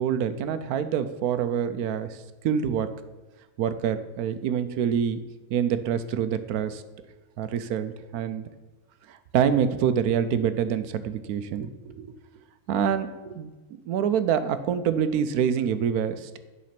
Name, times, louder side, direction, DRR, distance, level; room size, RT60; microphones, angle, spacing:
voice 1, 0.0-2.2 2.4-2.9 3.6-5.2 5.5-6.8 7.4-8.4 9.1-12.1 12.7-13.5 13.9-16.4, right 8 dB, 75° right, 12 dB, 1.1 m, -26 dB
10.0 x 4.2 x 5.8 m, 1.2 s
omnidirectional pair, 1.6 m